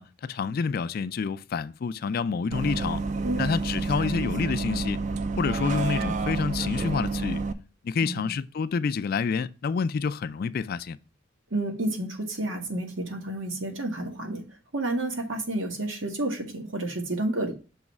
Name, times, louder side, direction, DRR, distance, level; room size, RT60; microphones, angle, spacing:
voice 1, 0.0-3.0 3.4-5.0 5.4-7.4 7.8-11.0, left 5 dB, 50° left, 0.3 m, -28 dB
Bus, 2.5-7.5, right 3 dB, 35° right, 0.4 m, -29 dB
voice 2, 8.0-8.3 11.5-14.4 14.7-17.5, right 1 dB, 80° right, 1.5 m, -30 dB
6.3 x 3.1 x 5.9 m
head